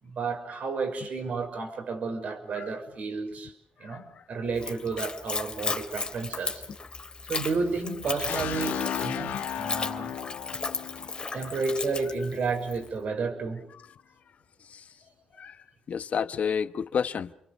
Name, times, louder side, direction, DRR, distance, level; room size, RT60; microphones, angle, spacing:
voice 1, 0.0-3.5 3.8-6.6 7.3-10.2 11.3-13.6, right 4 dB, 65° right, 5.8 m, -31 dB
Splash splatter / Trickle dribble, 4.5-12.9, left 4 dB, 35° left, 2.9 m, -35 dB
sound 1, 8.3-12.1, left 10 dB, 90° left, 1.2 m, -35 dB
voice 2, 15.9-17.3, left 7 dB, 60° left, 1.2 m, -30 dB
28.5 x 24.0 x 6.9 m
cardioid pair, 75°, 3 cm